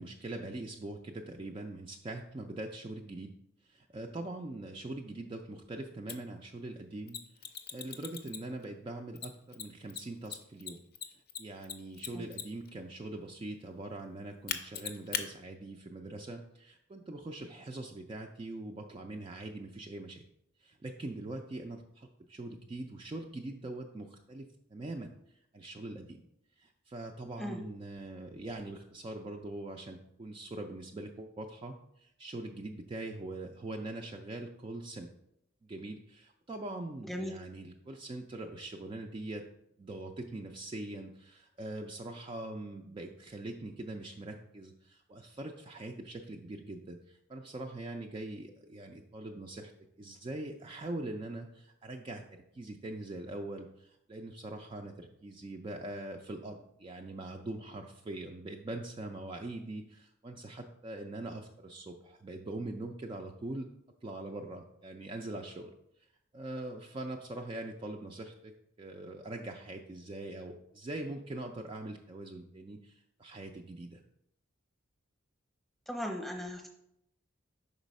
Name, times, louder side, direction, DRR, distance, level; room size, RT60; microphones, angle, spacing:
voice 1, 0.0-3.3 3.6-20.2 20.6-25.1 25.5-26.2 26.6-35.1 35.6-39.5 39.8-49.7 50.0-63.7 64.0-65.7 66.0-66.1 66.3-74.0, right 2 dB, 25° right, 2 dB, 0.3 m, -42 dB
Mechanisms, 6.1-6.2 7.1-8.6 9.2-12.7 14.5-15.3, left 8 dB, 50° left, 0.5 m, -38 dB
voice 2, 37.0-37.3 75.9-76.7, left 1 dB, ahead, 3 dB, 0.8 m, -38 dB
5.4 x 4.0 x 5.2 m, 0.80 s
head